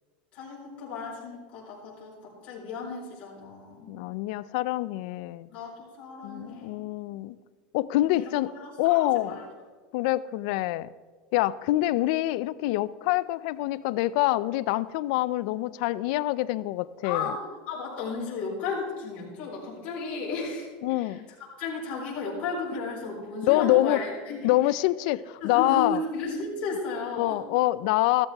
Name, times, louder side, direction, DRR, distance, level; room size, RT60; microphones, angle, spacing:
voice 1, 0.3-3.9 5.5-6.9 8.0-9.4 17.0-17.4 17.7-20.7 20.9-21.2 21.6-24.5 25.4-27.4, left 4 dB, 30° left, -7 dB, 4.2 m, -34 dB
voice 2, 3.9-5.5 6.2-7.4 7.7-8.5 8.8-9.3 9.9-10.9 11.3-17.3 20.8-21.2 23.4-24.0 24.4-26.0 27.2-28.3, left 17 dB, 55° left, 17 dB, 0.4 m, -25 dB
14.5 x 13.5 x 3.5 m, 1.4 s
supercardioid pair, 170°, 4 cm